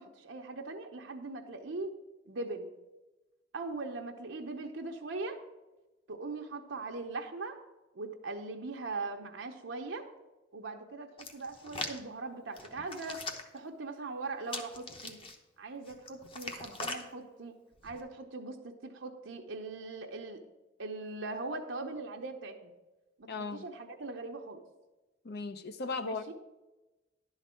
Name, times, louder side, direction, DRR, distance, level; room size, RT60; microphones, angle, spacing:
voice 1, 0.0-1.9 2.3-2.7 3.5-5.4 6.1-7.6 7.9-10.1 10.5-13.2 13.5-15.2 15.6-17.5 17.8-20.4 20.8-22.7 23.2-24.6 26.0-26.3, right 3 dB, 85° right, 2 dB, 0.8 m, -40 dB
Hands, 11.2-12.0 12.6-13.6 14.5-15.3 15.9-17.0 17.7-18.0, left 3 dB, 30° left, 0.9 m, -41 dB
voice 2, 23.3-23.6 25.2-26.3, left 3 dB, 60° left, 10 dB, 0.6 m, -37 dB
11.0 x 4.0 x 7.5 m, 1.1 s
head